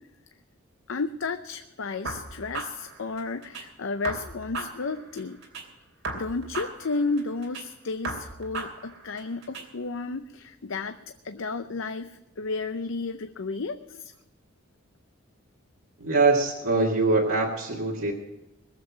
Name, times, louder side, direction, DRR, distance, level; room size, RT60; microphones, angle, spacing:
voice 1, 0.9-5.4 6.1-11.0 11.2-14.1, left 3 dB, 75° left, 9 dB, 0.6 m, -32 dB
sound 1, 2.0-3.6 4.0-5.6 6.0-7.6 8.0-9.6, right 3 dB, 70° right, 3.1 m, -36 dB
voice 2, 16.0-18.1, right 3 dB, 90° right, -3 dB, 1.9 m, -23 dB
21.0 x 7.6 x 7.3 m, 0.97 s
head